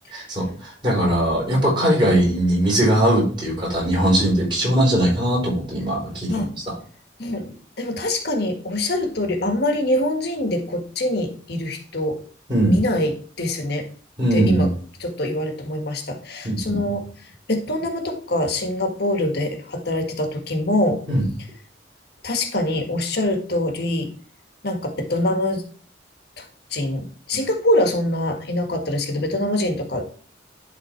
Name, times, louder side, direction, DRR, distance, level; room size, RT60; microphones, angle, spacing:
voice 1, 0.1-6.4 12.5-12.8 14.2-14.7 16.4-16.8 21.1-21.2, right 1 dB, 25° right, -4 dB, 4.7 m, -20 dB
voice 2, 7.2-12.3 12.7-13.9 14.3-14.7 15.0-17.1 17.5-21.0 22.2-24.1 24.6-25.6 26.4-26.5 26.7-30.1, left 1 dB, 60° left, 4 dB, 1.6 m, -24 dB
11.0 x 4.0 x 4.4 m, 0.42 s
head